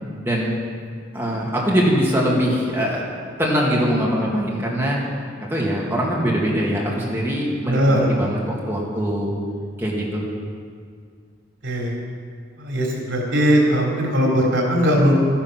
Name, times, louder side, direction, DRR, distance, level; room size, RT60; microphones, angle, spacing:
voice 1, 0.2-0.5 1.1-3.0 3.4-5.0 5.5-9.3 9.8-10.2, equal, 10° right, -4 dB, 2.3 m, -22 dB
voice 2, 7.7-8.1 11.6-11.9 12.6-15.1, equal, 80° right, -2 dB, 3.6 m, -19 dB
14.0 x 10.0 x 6.1 m, 2.1 s
head